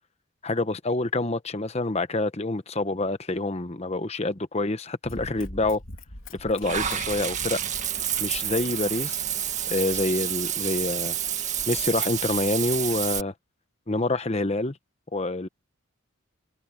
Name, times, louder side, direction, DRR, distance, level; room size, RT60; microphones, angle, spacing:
voice 1, 0.4-5.8 6.4-7.6 8.2-9.2 9.7-11.1 11.7-13.3 13.9-14.8 15.1-15.5, left 2 dB, 30° left, 1.0 m, -27 dB
Run, 5.0-10.3 10.9-11.0, left 2 dB, 70° left, 3.7 m, -43 dB
Water / Bathtub (filling or washing), 6.6-13.2, right 9 dB, 35° right, 1.9 m, -29 dB
head